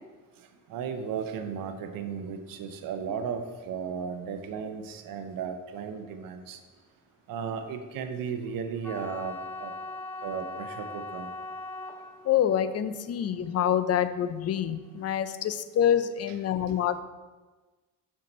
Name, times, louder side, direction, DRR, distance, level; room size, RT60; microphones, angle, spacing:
voice 1, 0.7-6.6 7.3-9.7 10.2-11.3, right 6 dB, 75° right, 7 dB, 0.7 m, -35 dB
sound 1, 8.8-15.0, left 2 dB, 5° left, 0.7 m, -41 dB
voice 2, 12.2-17.0, left 9 dB, 50° left, 12 dB, 0.5 m, -26 dB
6.6 x 5.6 x 4.3 m, 1.3 s
cardioid pair, 105°, 34 cm